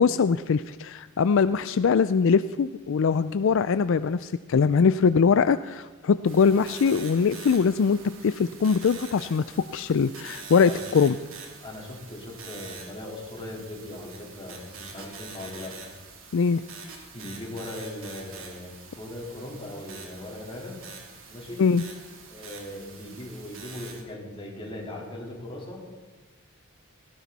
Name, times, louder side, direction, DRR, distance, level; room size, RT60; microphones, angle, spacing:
voice 1, 0.0-9.4 9.7-11.2 16.3-16.6 21.6-21.8, left 5 dB, 65° left, 14 dB, 0.4 m, -22 dB
sound 1, 6.2-24.0, right 5 dB, 70° right, 3.1 m, -45 dB
voice 2, 11.6-15.8 17.1-20.9 21.3-21.7 22.3-25.9, left 1 dB, 25° left, -3 dB, 3.8 m, -39 dB
18.5 x 17.0 x 4.1 m, 1.4 s
head